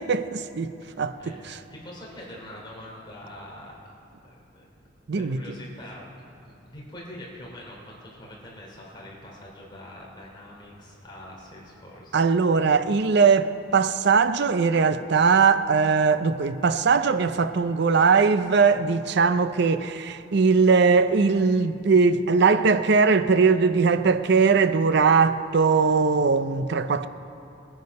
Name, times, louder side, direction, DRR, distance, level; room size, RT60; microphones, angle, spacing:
voice 1, 0.0-1.3 5.1-5.4 12.1-27.1, right 5 dB, 60° right, 0.5 m, -20 dB
voice 2, 0.8-3.8 4.2-4.7 5.1-12.2, left 1 dB, 25° left, 3.0 m, -44 dB
19.5 x 9.5 x 5.3 m
head